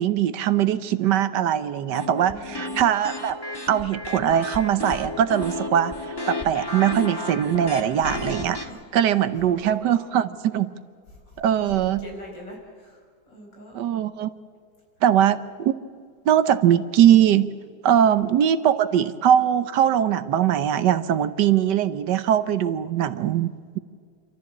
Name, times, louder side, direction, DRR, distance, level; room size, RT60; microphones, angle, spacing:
voice 1, 0.0-3.4 3.7-8.6 8.9-10.7 11.4-12.1 13.7-14.3 15.0-15.7 16.2-17.5 17.8-23.8, right 10 dB, 75° right, 13 dB, 1.4 m, -21 dB
sound 1, 1.9-8.7, left 2 dB, 15° left, 1.5 m, -33 dB
voice 2, 2.3-2.8 7.9-8.2 8.6-8.8 9.1-9.8 11.3-13.8 17.8-18.2, equal, 90° left, 0 dB, 5.6 m, -42 dB
27.5 x 13.5 x 8.6 m, 2.1 s
omnidirectional pair, 1.9 m